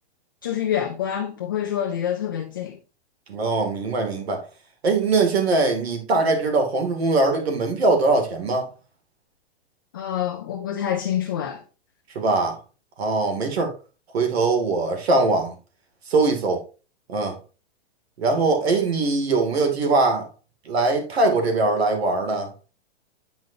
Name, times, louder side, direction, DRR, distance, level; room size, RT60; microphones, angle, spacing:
voice 1, 0.4-2.8 9.9-11.6, left 9 dB, 20° left, 0.3 m, -26 dB
voice 2, 3.3-4.4 4.8-8.7 12.1-12.6 13.0-13.7 14.1-15.5 16.1-16.6 17.1-17.4 18.2-20.3 20.6-22.5, right 3 dB, 75° right, 2.6 m, -21 dB
9.2 x 5.2 x 2.7 m
hypercardioid pair, 170°, 32 cm